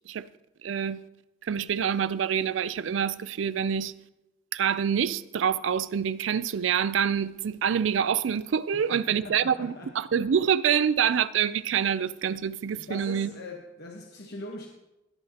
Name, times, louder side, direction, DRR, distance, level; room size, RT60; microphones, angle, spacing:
voice 1, 0.6-1.0 1.4-3.9 4.5-13.3, right 8 dB, 90° right, 0.4 m, -26 dB
voice 2, 8.7-9.9 12.8-14.7, left 2 dB, 60° left, 1.1 m, -41 dB
18.0 x 10.5 x 2.9 m
head